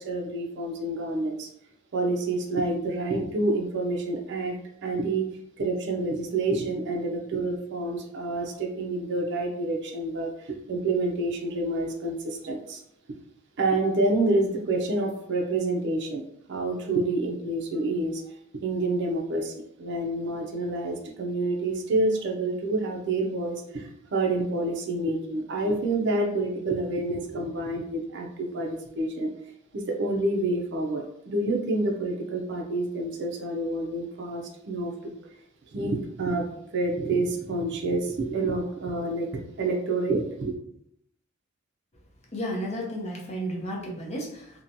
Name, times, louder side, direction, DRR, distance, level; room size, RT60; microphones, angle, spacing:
voice 1, 0.0-1.5 1.9-5.3 5.6-12.8 13.6-16.2 16.5-18.3 18.6-19.5 19.8-29.3 29.7-35.1 35.7-40.5, right 2 dB, 55° right, 1 dB, 0.5 m, -28 dB
voice 2, 42.3-44.6, equal, 30° left, -2 dB, 0.6 m, -33 dB
2.8 x 2.1 x 2.6 m, 0.76 s
head